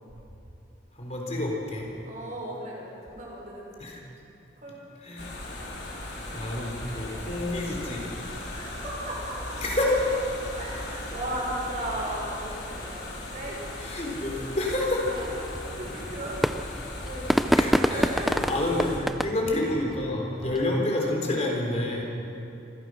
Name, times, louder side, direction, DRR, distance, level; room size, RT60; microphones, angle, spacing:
voice 1, 1.0-1.9 3.8-4.0 5.0-5.3 6.1-8.1 9.6-10.0 13.8-15.0 17.5-22.0, left 1 dB, 35° left, -1 dB, 3.9 m, -29 dB
voice 2, 2.0-3.9 4.6-4.8 8.5-9.6 10.5-13.0 13.3-14.6 15.1-19.0 19.3-19.5 20.4-20.7, right 1 dB, 45° right, -3 dB, 5.7 m, -37 dB
sound 1, 5.2-19.0, left 1 dB, 60° left, 4.3 m, -38 dB
sound 2, 14.7-20.9, equal, ahead, 0.4 m, -29 dB
26.0 x 15.5 x 6.4 m, 2.8 s
head